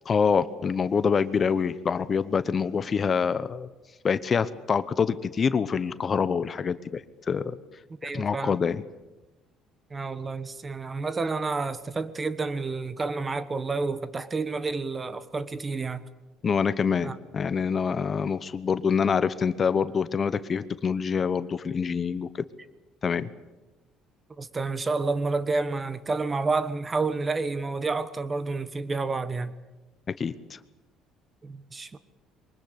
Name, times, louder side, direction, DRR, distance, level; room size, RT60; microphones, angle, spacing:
voice 1, 0.1-3.7 4.0-7.0 7.3-7.6 8.0-8.8 16.4-22.3 23.0-23.3 30.2-30.6, left 6 dB, 35° left, 1.0 m, -26 dB
voice 2, 7.9-8.6 9.9-16.0 17.0-17.2 24.4-29.6 31.4-32.0, right 3 dB, 25° right, 1.3 m, -29 dB
23.0 x 20.5 x 8.2 m
cardioid pair, 105°, 0 cm